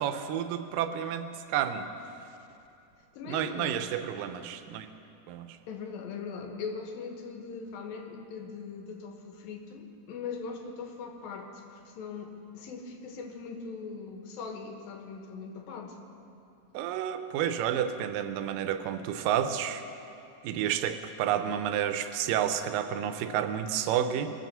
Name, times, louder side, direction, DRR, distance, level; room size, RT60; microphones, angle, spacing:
voice 1, 0.0-1.9 3.3-4.9 5.3-5.5 16.7-19.8 20.4-24.3, right 9 dB, 80° right, 9 dB, 2.3 m, -30 dB
voice 2, 3.1-3.9 5.7-16.0, left 5 dB, 90° left, 3 dB, 3.0 m, -40 dB
22.5 x 7.7 x 6.7 m, 2.7 s
omnidirectional pair, 4.0 m